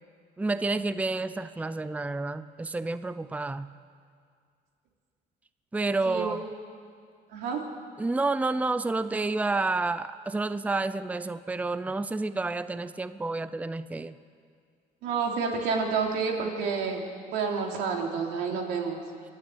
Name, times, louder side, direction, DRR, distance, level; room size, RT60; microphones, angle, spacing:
voice 1, 0.4-3.7 5.7-6.4 8.0-14.1, right 3 dB, 10° right, 13 dB, 0.6 m, -29 dB
voice 2, 6.1-6.4 7.3-7.6 15.0-17.0 17.3-19.0, right 5 dB, 90° right, 1 dB, 3.3 m, -29 dB
27.0 x 12.0 x 8.5 m, 2.1 s
cardioid pair, 110°, 17 cm